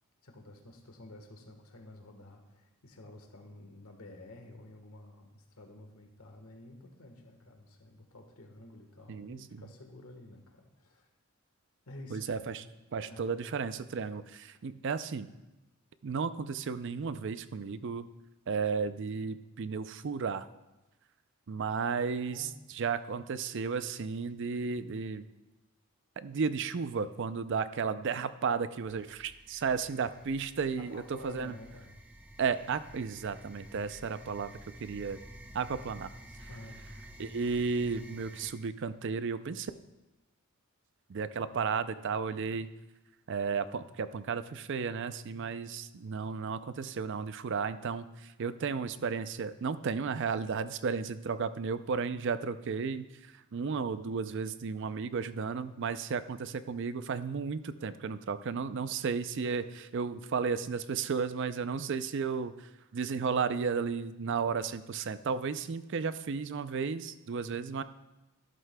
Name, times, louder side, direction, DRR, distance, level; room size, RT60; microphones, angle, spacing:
voice 1, 0.2-11.1 11.9-12.4 13.1-13.3 22.3-22.5 30.8-32.0 36.5-36.9, left 1 dB, 80° left, 4 dB, 1.3 m, -51 dB
voice 2, 9.1-9.6 12.1-12.6 12.9-15.3 16.0-18.0 18.5-20.5 21.5-25.2 26.2-31.5 32.4-34.5 34.8-35.2 35.5-36.1 37.2-39.7 41.1-42.7 43.3-53.0 53.5-62.5 62.9-67.8, right 5 dB, 55° right, 13 dB, 0.4 m, -33 dB
sound 1, 28.9-38.5, right 1 dB, 5° right, 0.7 m, -51 dB
12.5 x 11.5 x 2.2 m, 1.0 s
head